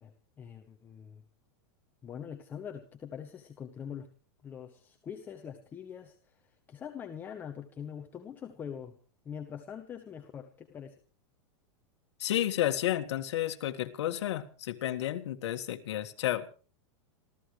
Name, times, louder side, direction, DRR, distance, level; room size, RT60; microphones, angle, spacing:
voice 1, 0.0-1.2 2.0-4.1 4.4-9.0 9.2-11.0, left 8 dB, 10° left, 4 dB, 0.9 m, -43 dB
voice 2, 12.2-16.5, left 12 dB, 65° left, 6 dB, 1.7 m, -31 dB
26.5 x 15.0 x 3.2 m, 0.37 s
supercardioid pair, 175°, 16 cm